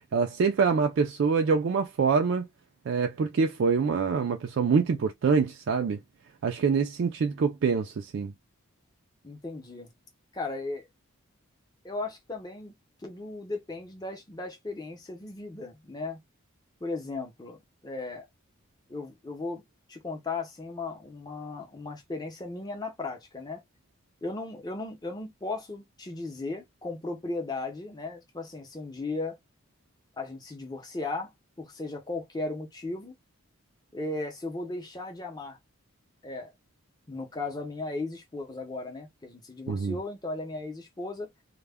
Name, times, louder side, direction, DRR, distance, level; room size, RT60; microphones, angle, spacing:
voice 1, 0.1-2.5 2.9-6.0 6.4-8.3 39.7-40.0, right 5 dB, 60° right, 0.3 m, -25 dB
voice 2, 9.2-9.9 10.3-10.8 11.8-12.8 13.0-16.2 16.8-18.2 18.9-19.6 19.9-23.6 24.2-29.4 30.2-31.3 31.6-33.1 33.9-35.6 36.2-36.5 37.1-41.3, left 3 dB, 20° left, 0.6 m, -36 dB
2.1 x 2.1 x 3.4 m
head